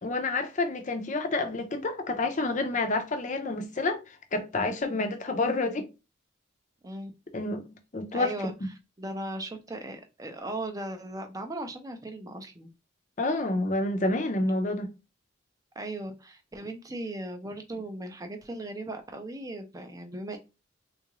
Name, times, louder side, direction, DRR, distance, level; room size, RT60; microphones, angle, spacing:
voice 1, 0.0-4.0 4.3-5.8 7.3-7.6 7.9-8.3 13.2-14.9, left 2 dB, 35° left, 0.5 m, -28 dB
voice 2, 8.1-8.5 9.0-12.7 15.8-20.4, right 1 dB, 15° right, 0.5 m, -37 dB
3.7 x 2.4 x 2.9 m
head